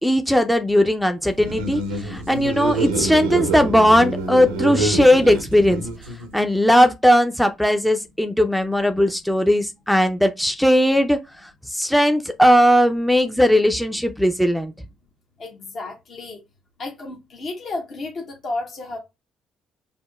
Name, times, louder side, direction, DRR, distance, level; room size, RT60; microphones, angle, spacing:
voice 1, 0.0-5.8 6.3-14.7, equal, ahead, 0.4 m, -18 dB
sound 1, 1.3-6.4, right 3 dB, 80° right, 0.6 m, -26 dB
voice 2, 15.4-16.4 16.8-19.0, left 2 dB, 50° left, 0.9 m, -32 dB
5.1 x 2.1 x 2.3 m
hypercardioid pair, 45°, 0 cm